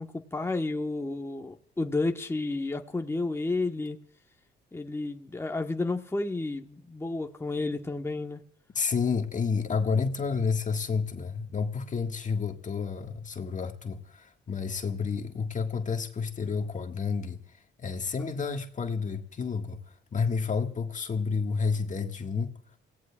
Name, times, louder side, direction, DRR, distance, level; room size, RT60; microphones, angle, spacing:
voice 1, 0.0-4.0 4.7-8.4, left 2 dB, 10° left, 1.2 m, -31 dB
voice 2, 8.7-17.4 17.8-19.8 20.1-22.5, left 5 dB, 40° left, 1.7 m, -30 dB
28.0 x 17.5 x 2.4 m
cardioid pair, 90°, 20 cm